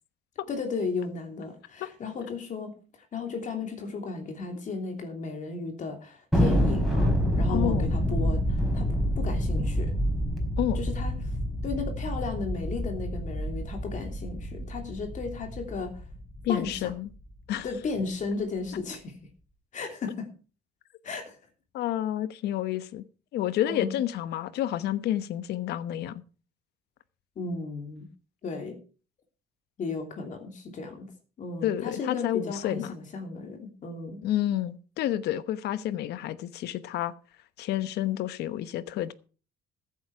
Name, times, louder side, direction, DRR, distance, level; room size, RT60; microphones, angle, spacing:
voice 1, 0.5-7.1 7.4-9.9 10.7-11.4 11.6-16.1 16.5-16.9 17.6-19.2 19.7-20.3 21.0-21.4 23.6-24.0 27.4-28.1 28.4-28.8 29.8-31.1 31.4-34.2, left 4 dB, 45° left, 3.1 m, -35 dB
Thunder, 6.3-17.0, equal, ahead, 4.8 m, -28 dB
voice 2, 7.5-7.9 10.6-10.8 16.4-17.1 17.5-17.7 21.7-23.0 23.3-26.2 31.6-32.9 34.2-37.1 37.6-39.1, left 12 dB, 75° left, 1.0 m, -29 dB
14.5 x 9.5 x 4.8 m
cardioid pair, 110°, 17 cm